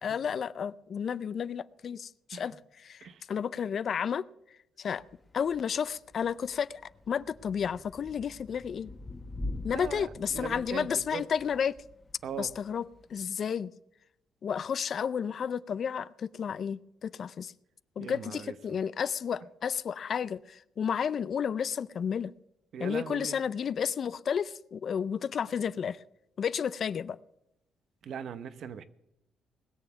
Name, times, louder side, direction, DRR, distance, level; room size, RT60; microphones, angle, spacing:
voice 1, 0.0-4.3 4.8-5.0 5.3-6.8 7.1-8.9 9.6-11.7 12.4-12.8 13.1-13.7 14.4-17.5 18.0-22.3 22.8-26.0 26.4-27.2, left 7 dB, 55° left, 0.5 m, -32 dB
Thunder / Rain, 5.0-13.3, left 2 dB, 15° left, 1.4 m, -44 dB
voice 2, 9.7-11.2 12.2-12.5 18.0-18.8 22.7-23.4 28.0-28.8, right 7 dB, 65° right, 1.0 m, -40 dB
20.0 x 7.1 x 7.0 m
cardioid pair, 90°, 0 cm